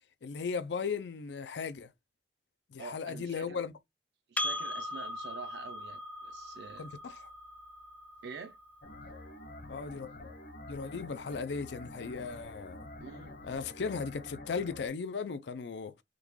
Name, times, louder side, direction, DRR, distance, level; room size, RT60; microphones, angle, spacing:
voice 1, 0.2-1.9 2.7-3.7 6.8-7.3 9.7-10.3 10.7-12.9 13.4-15.9, left 5 dB, 75° left, 0.4 m, -37 dB
voice 2, 2.8-3.6 4.3-6.9 8.2-8.6 13.0-13.4, right 5 dB, 70° right, 0.5 m, -46 dB
Percussion, 4.4-9.2, left 1 dB, 10° left, 0.3 m, -40 dB
sound 1, 8.8-14.9, left 1 dB, 55° left, 0.9 m, -48 dB
3.7 x 2.3 x 3.1 m
head